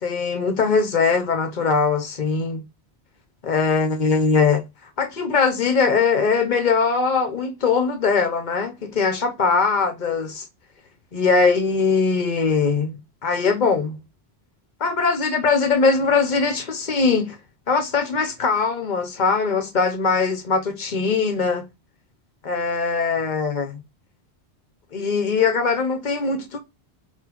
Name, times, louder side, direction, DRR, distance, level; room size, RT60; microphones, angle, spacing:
voice 1, 0.0-2.6 3.4-4.6 5.0-10.5 11.1-14.0 14.8-17.4 17.7-21.7 22.4-23.8 24.9-26.6, left 4 dB, 45° left, 0.8 m, -21 dB
4.4 x 3.9 x 2.9 m
omnidirectional pair, 1.1 m